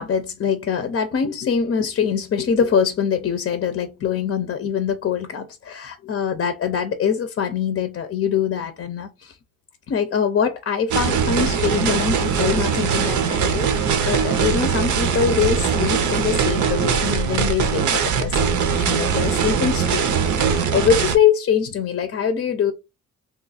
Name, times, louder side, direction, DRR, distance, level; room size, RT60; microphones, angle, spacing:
voice 1, 0.0-9.4 9.9-22.7, left 7 dB, 45° left, 0.6 m, -23 dB
sound 1, 10.9-21.2, right 6 dB, 75° right, 0.7 m, -21 dB
3.0 x 2.4 x 4.0 m
cardioid pair, 100°, 30 cm